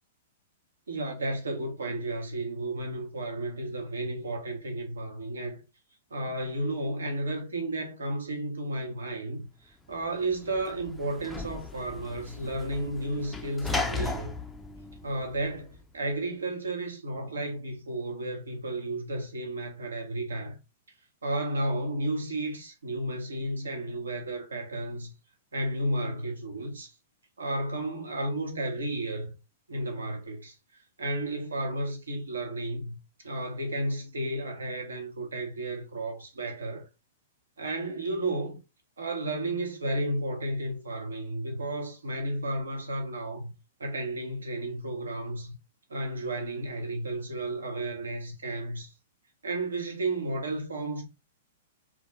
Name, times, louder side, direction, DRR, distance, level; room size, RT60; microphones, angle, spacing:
voice 1, 0.9-5.6 6.1-14.3 15.0-20.6 21.2-25.1 25.5-26.9 27.4-29.3 29.7-33.0 33.2-36.9 37.6-38.6 39.0-43.5 43.8-45.5 45.9-48.9 49.4-51.1, right 1 dB, 85° right, 0.8 m, -33 dB
Sliding door / Slam, 10.0-15.8, left 3 dB, 10° left, 0.3 m, -36 dB
2.3 x 2.1 x 2.8 m
hypercardioid pair, 115°, 0 cm